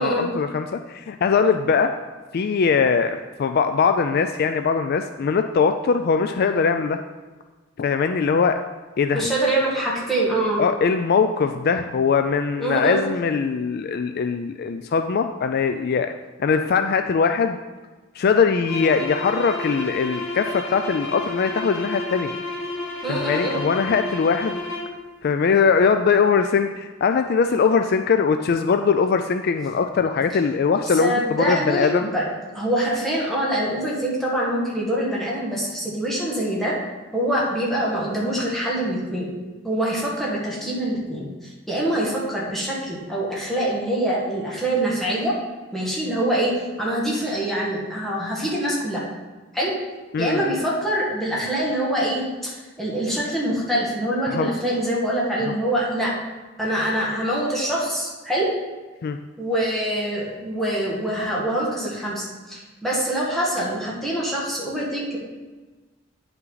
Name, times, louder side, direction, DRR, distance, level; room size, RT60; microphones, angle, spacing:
voice 1, 0.0-1.9 2.3-7.0 7.8-8.6 9.0-9.3 10.6-16.1 16.4-17.6 18.2-22.3 23.1-24.6 25.2-32.1 50.1-50.5 54.3-54.5 55.4-55.5 59.0-59.2, left 5 dB, 50° left, 7 dB, 0.3 m, -21 dB
voice 2, 9.1-10.6 12.6-13.1 23.0-23.6 31.0-32.3 32.5-36.8 37.1-39.3 39.6-45.3 45.7-46.5 46.8-49.0 49.5-49.7 50.2-56.1 56.6-58.5 59.4-65.2, right 1 dB, ahead, -6 dB, 1.9 m, -24 dB
sound 1, 18.6-25.0, left 1 dB, 80° left, 2.1 m, -32 dB
9.4 x 5.7 x 4.0 m, 1.3 s
head